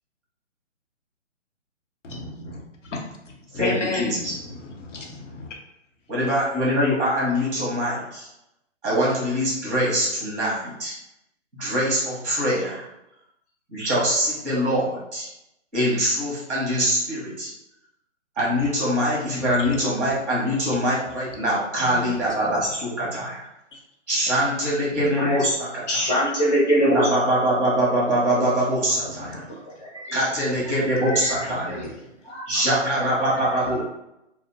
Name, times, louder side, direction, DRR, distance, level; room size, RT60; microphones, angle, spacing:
voice 1, 2.0-5.5 19.5-20.1 21.1-21.2 21.8-22.6 24.9-25.1 28.9-29.6 31.1-32.1 33.6-33.8, left 3 dB, 75° left, 1 dB, 0.8 m, -35 dB
voice 2, 3.6-4.1 6.1-8.3 8.8-11.0 11.5-12.9 13.7-15.3 15.7-17.5 18.4-23.5 24.1-25.8 26.9-29.4 30.1-31.8 32.5-33.8, equal, 10° right, -8 dB, 0.6 m, -23 dB
voice 3, 25.9-27.3 28.3-28.5 29.3-30.2 30.6-31.9 32.2-32.5 33.2-33.8, equal, 35° left, -7 dB, 0.7 m, -25 dB
2.5 x 2.0 x 2.8 m, 0.86 s
hypercardioid pair, 175°, 37 cm